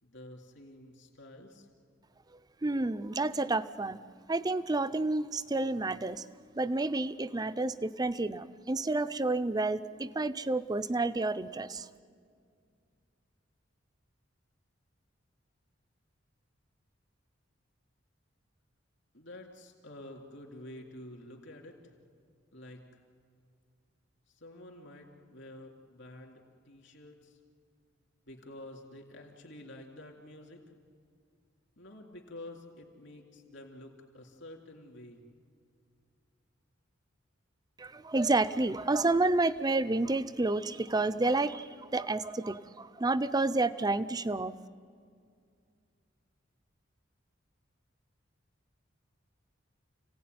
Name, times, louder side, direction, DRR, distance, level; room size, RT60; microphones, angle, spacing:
voice 1, 0.0-1.7 19.1-21.8 22.5-22.9 24.3-27.4 28.3-30.6 31.8-35.2, left 1 dB, 65° left, 1 dB, 3.4 m, -49 dB
voice 2, 2.6-4.0 4.3-6.2 6.6-11.9 37.8-44.5, right 2 dB, 20° right, 14 dB, 0.6 m, -30 dB
29.5 x 16.5 x 9.5 m, 2.3 s
head